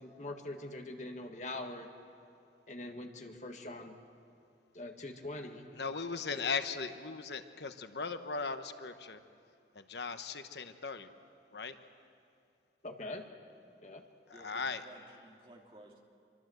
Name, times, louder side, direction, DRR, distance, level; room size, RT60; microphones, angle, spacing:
voice 1, 0.0-1.9 2.7-4.0 4.7-5.7 6.3-6.4 12.8-13.2 13.8-14.0, left 2 dB, 40° left, 4 dB, 1.7 m, -43 dB
voice 2, 5.7-9.2 9.7-11.1 11.5-11.8 14.3-14.8, left 5 dB, 75° left, 9 dB, 1.1 m, -38 dB
voice 3, 14.3-16.0, right 1 dB, 30° right, -1 dB, 2.9 m, -56 dB
26.0 x 24.5 x 7.9 m, 2.5 s
head